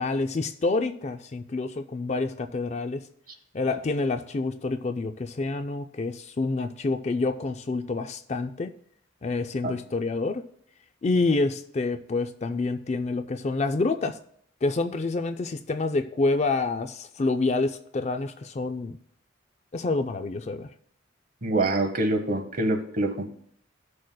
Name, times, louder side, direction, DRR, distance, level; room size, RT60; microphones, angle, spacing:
voice 1, 0.0-3.0 3.5-8.7 9.2-10.4 11.0-14.2 14.6-19.0 19.7-20.7, left 3 dB, 35° left, 0.4 m, -27 dB
voice 2, 21.4-23.3, right 2 dB, 45° right, 1.0 m, -25 dB
17.0 x 6.3 x 2.2 m
head